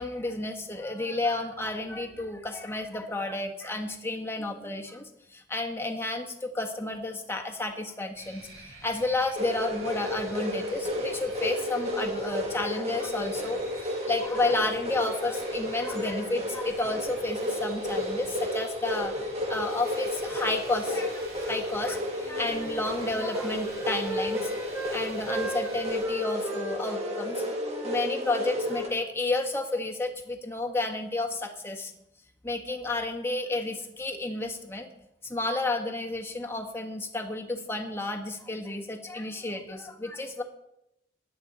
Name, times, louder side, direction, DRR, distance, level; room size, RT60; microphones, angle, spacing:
voice 1, 0.0-24.5 24.9-27.4 27.8-31.9 32.4-34.9 35.2-40.4, left 2 dB, 15° left, 2 dB, 1.5 m, -31 dB
sound 1, 8.1-26.0, right 2 dB, 60° right, 6.6 m, -48 dB
sound 2, 9.3-28.9, left 1 dB, 35° right, 1.8 m, -32 dB
Wind instrument woodwind instrument, 22.1-25.0 25.2-28.6, left 1 dB, 15° right, 1.0 m, -37 dB
16.0 x 11.0 x 4.0 m, 0.82 s
head